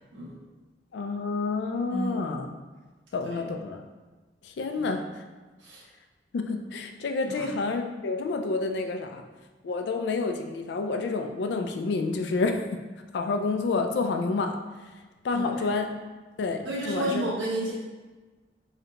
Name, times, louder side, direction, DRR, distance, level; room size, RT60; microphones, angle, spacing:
voice 1, 0.9-2.5 3.1-3.9 4.4-5.0 6.3-9.2 9.6-12.6 13.1-14.6 15.2-15.9 16.4-17.3, left 3 dB, 70° left, 5 dB, 0.3 m, -29 dB
voice 2, 1.9-2.4 3.2-3.4 4.7-4.9 5.6-5.8 7.3-7.5 15.3-15.8 16.6-17.7, right 1 dB, 85° right, -6 dB, 1.2 m, -32 dB
3.8 x 3.2 x 2.8 m, 1.3 s
head